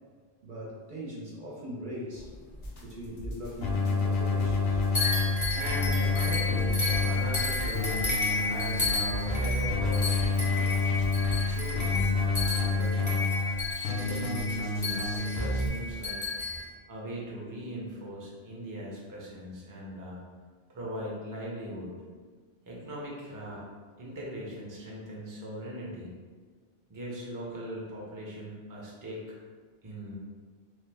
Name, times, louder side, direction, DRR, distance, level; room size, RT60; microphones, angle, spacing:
voice 1, 0.4-2.3 2.8-4.8, equal, 60° right, -4 dB, 0.6 m, -40 dB
sound 1, 2.1-3.7 4.0-4.7 4.9-16.6, left 3 dB, 25° left, 0.4 m, -33 dB
sound 2, 2.6-13.1, equal, 60° left, 0.8 m, -39 dB
Keyboard (musical), 3.6-15.7, left 3 dB, 90° left, 0.8 m, -29 dB
voice 2, 5.5-10.8 11.5-13.2 13.7-16.2 16.9-20.2 20.7-22.0 22.7-23.6 24.0-26.1 26.9-29.3 29.8-30.2, equal, 25° right, -4 dB, 0.5 m, -40 dB
3.1 x 2.0 x 3.3 m, 1.5 s
omnidirectional pair, 1.0 m